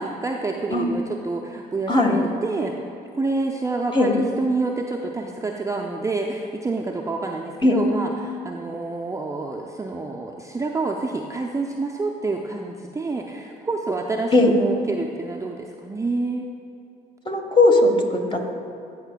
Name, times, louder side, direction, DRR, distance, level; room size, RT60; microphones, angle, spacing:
voice 1, 0.0-2.7 3.1-16.5, right 3 dB, 15° right, 1 dB, 0.5 m, -28 dB
voice 2, 1.9-2.2 3.9-4.1 7.6-7.8 14.3-14.5 17.3-18.5, left 2 dB, 25° left, 3 dB, 1.2 m, -18 dB
15.0 x 5.0 x 2.2 m, 2.6 s
hypercardioid pair, 55°, 21 cm